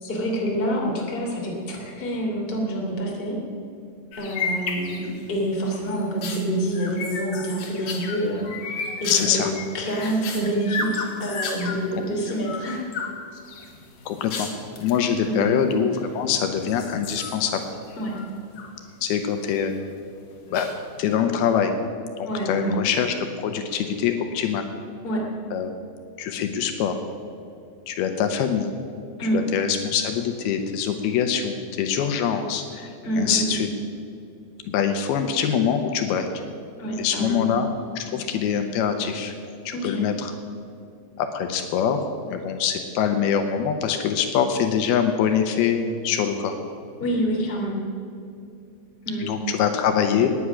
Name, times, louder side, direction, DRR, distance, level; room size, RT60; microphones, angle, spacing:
voice 1, 0.0-3.4 4.2-5.0 5.3-9.4 9.7-12.8 13.3-13.4 15.2-15.5 18.0-18.1 22.2-22.8 25.0-25.3 29.2-29.4 33.0-33.6 36.8-37.4 39.7-40.0 47.0-47.8 49.0-49.2, right 1 dB, 15° left, -2 dB, 2.3 m, -27 dB
sound 1, 4.1-5.3 5.7-11.8 12.3-13.1 13.5-15.0 15.8-16.3 16.7-18.7 19.0-19.7 20.5-21.1, left 4 dB, 60° left, 3.2 m, -33 dB
voice 2, 9.1-9.5 14.1-14.5 14.8-17.6 19.0-19.7 20.5-20.7 21.0-21.7 22.2-24.7 25.5-25.7 26.2-27.0 27.9-28.7 29.2-33.7 34.6-36.3 37.0-37.7 38.0-39.3 39.7-40.3 41.2-42.0 42.3-46.6 49.2-50.3, left 8 dB, 80° left, 6 dB, 2.7 m, -24 dB
18.0 x 9.9 x 6.2 m, 2.6 s
omnidirectional pair, 4.6 m